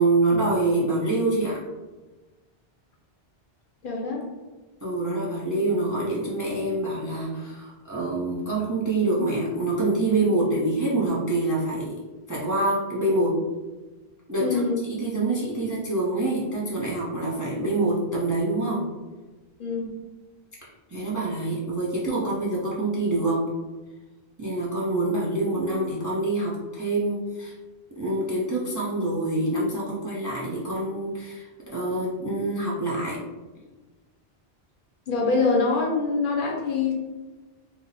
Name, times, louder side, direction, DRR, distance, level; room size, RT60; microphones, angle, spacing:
voice 1, 0.0-1.6 4.8-11.9 12.3-13.4 14.3-18.8 20.9-23.4 24.4-27.5 28.0-33.2, right 2 dB, 25° right, -6 dB, 0.4 m, -26 dB
voice 2, 3.8-4.2 14.4-14.8 19.6-19.9 35.1-36.9, left 4 dB, 60° left, -1 dB, 0.7 m, -24 dB
2.7 x 2.0 x 3.9 m, 1.2 s
omnidirectional pair, 1.1 m